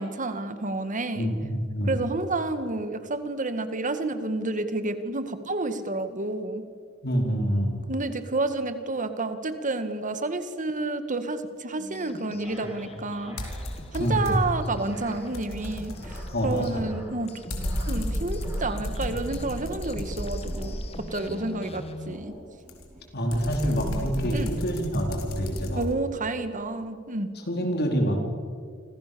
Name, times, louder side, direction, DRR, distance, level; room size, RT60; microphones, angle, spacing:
voice 1, 0.0-1.3 1.9-6.6 7.9-13.4 13.9-17.3 17.8-20.8 21.1-22.3 24.3-24.5 25.7-27.3, right 2 dB, 40° right, 9 dB, 2.0 m, -30 dB
voice 2, 1.2-1.9 7.0-7.8 14.0-14.4 16.3-16.9 23.1-25.8 27.5-28.2, equal, 50° left, 3 dB, 4.6 m, -26 dB
sound 1, 11.8-22.2, left 1 dB, 30° left, 1.9 m, -44 dB
sound 2, 12.2-23.1, right 1 dB, 15° right, 7.3 m, -48 dB
sound 3, 13.4-14.7 15.0-21.2 22.7-25.9, equal, 70° left, 4.6 m, -33 dB
29.5 x 25.5 x 7.0 m, 2.1 s
head